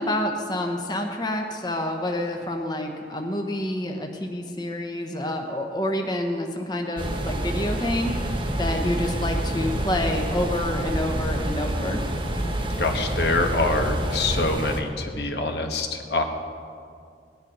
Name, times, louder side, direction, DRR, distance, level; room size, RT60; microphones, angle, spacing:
voice 1, 0.0-12.0, left 1 dB, 25° left, 2 dB, 1.0 m, -28 dB
sound 1, 7.0-14.8, right 1 dB, 25° right, 1.3 m, -27 dB
voice 2, 12.8-16.2, left 2 dB, 65° left, 4 dB, 1.2 m, -25 dB
18.0 x 10.5 x 5.4 m, 2.3 s
head